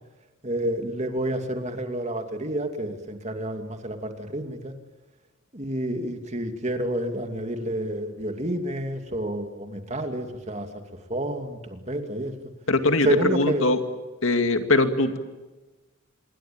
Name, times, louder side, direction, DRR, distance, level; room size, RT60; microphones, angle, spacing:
voice 1, 0.4-4.7 5.5-10.7 11.1-12.3 13.0-13.7, right 1 dB, 35° right, 6 dB, 2.6 m, -29 dB
voice 2, 12.7-13.8 14.2-15.2, left 2 dB, 70° left, 7 dB, 2.3 m, -21 dB
26.5 x 23.0 x 8.9 m, 1.2 s
head